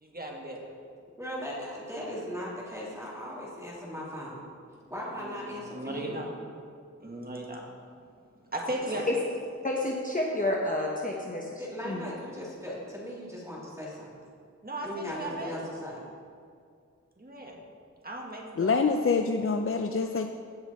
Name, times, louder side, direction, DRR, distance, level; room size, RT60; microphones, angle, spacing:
voice 1, 0.0-0.7 5.2-6.3 7.0-7.6 8.5-9.2 14.6-15.7 17.2-17.6 18.0-18.9, right 1 dB, 30° right, -1 dB, 1.7 m, -37 dB
voice 2, 1.2-4.4 4.9-6.2 8.7-9.0 11.6-14.1 14.8-16.0, equal, 10° right, -7 dB, 3.0 m, -38 dB
voice 3, 9.6-12.1, left 1 dB, 25° left, -2 dB, 1.1 m, -30 dB
voice 4, 18.6-20.3, left 4 dB, 45° left, 6 dB, 0.5 m, -26 dB
16.5 x 5.8 x 4.2 m, 2.3 s
wide cardioid pair, 60°, 30 cm